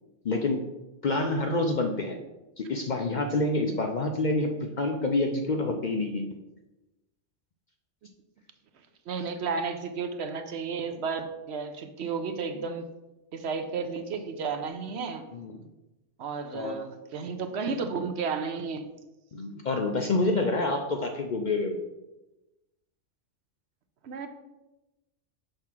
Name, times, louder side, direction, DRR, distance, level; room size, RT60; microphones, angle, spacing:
voice 1, 0.2-0.6 1.0-2.2 2.6-6.4 15.3-15.6 16.5-16.8 19.3-21.8, left 2 dB, 55° left, 4 dB, 0.5 m, -27 dB
voice 2, 9.1-12.8 13.3-15.3 16.2-18.9 24.0-24.3, right 5 dB, 65° right, 7 dB, 0.9 m, -33 dB
6.5 x 3.5 x 5.9 m, 1.0 s
omnidirectional pair, 1.3 m